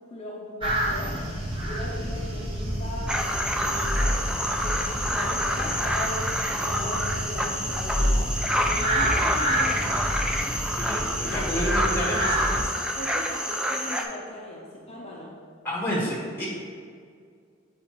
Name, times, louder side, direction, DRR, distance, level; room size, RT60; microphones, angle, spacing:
voice 1, 0.0-1.3 1.6-4.2 4.6-10.0 11.2-11.6 12.9-15.4, left 1 dB, 30° left, -3 dB, 0.7 m, -38 dB
sound 1, 0.6-12.6, equal, 25° right, 1.0 m, -29 dB
sound 2, 3.1-14.0, equal, 5° right, 0.4 m, -28 dB
voice 2, 10.8-12.7 15.6-16.5, equal, 10° left, -4 dB, 1.5 m, -29 dB
6.8 x 4.8 x 3.0 m, 2.1 s
head